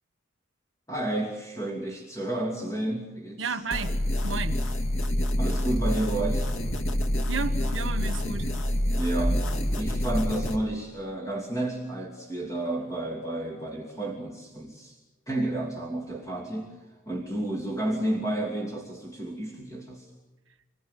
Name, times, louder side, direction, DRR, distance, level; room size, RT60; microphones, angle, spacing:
voice 1, 0.9-3.6 5.3-6.5 8.9-15.0 15.3-20.1, right 1 dB, 15° left, -1 dB, 2.9 m, -31 dB
voice 2, 3.4-4.0 4.2-4.6 7.3-8.5, right 4 dB, 75° right, 9 dB, 1.3 m, -32 dB
sound 1, 3.7-10.6, left 1 dB, 80° left, 2.1 m, -27 dB
27.5 x 20.0 x 8.4 m, 1.2 s
head